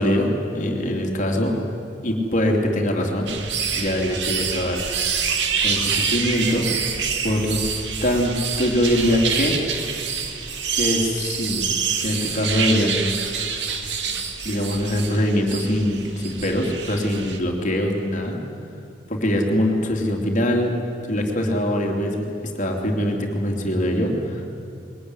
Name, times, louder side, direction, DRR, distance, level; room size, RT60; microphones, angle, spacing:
voice 1, 0.0-1.6 2.0-3.3 3.7-4.8 5.6-6.7 7.2-7.6 8.0-9.6 10.8-11.7 12.0-13.1 14.4-18.4 19.1-20.8 21.1-24.4, equal, 45° left, 1 dB, 3.1 m, -23 dB
sound 1, 3.3-17.4, right 6 dB, 75° right, 2.1 m, -26 dB
21.5 x 20.5 x 9.9 m, 2.5 s
head